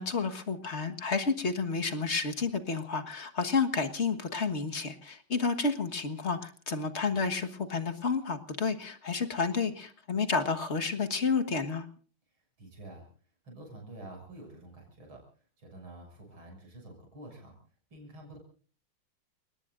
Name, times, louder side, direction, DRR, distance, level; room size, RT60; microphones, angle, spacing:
voice 1, 0.0-11.9, left 4 dB, 35° left, 7 dB, 1.5 m, -30 dB
voice 2, 12.6-13.1 13.4-15.2 15.6-17.6 17.9-18.4, right 1 dB, 75° right, 1 dB, 7.3 m, -48 dB
30.0 x 18.5 x 2.5 m, 0.42 s
omnidirectional pair, 2.3 m